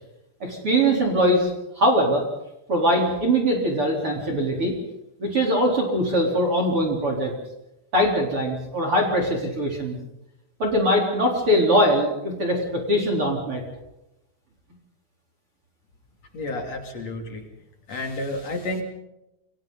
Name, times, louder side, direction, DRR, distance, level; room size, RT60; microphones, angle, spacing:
voice 1, 0.4-1.5 1.7-2.2 2.7-4.7 5.2-7.3 7.9-10.0 10.6-13.6, equal, 30° right, 1 dB, 4.2 m, -22 dB
voice 2, 16.3-17.5 17.9-18.8, left 2 dB, 35° left, 2 dB, 3.4 m, -30 dB
29.0 x 25.5 x 4.1 m, 0.91 s
omnidirectional pair, 5.9 m